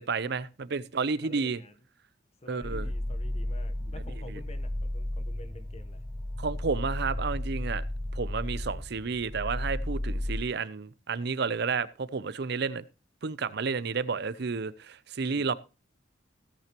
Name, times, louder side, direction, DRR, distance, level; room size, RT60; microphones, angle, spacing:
voice 1, 0.0-1.6 2.5-2.9 3.8-3.9 4.3-4.4 6.4-7.8 8.1-12.8 13.2-15.5, right 5 dB, 60° right, 0.6 m, -31 dB
voice 2, 1.2-1.8 2.4-6.0 15.2-15.5, left 1 dB, 35° left, 1.0 m, -49 dB
sound 1, 2.6-10.4, left 1 dB, 15° left, 0.7 m, -33 dB
16.5 x 8.8 x 3.0 m
head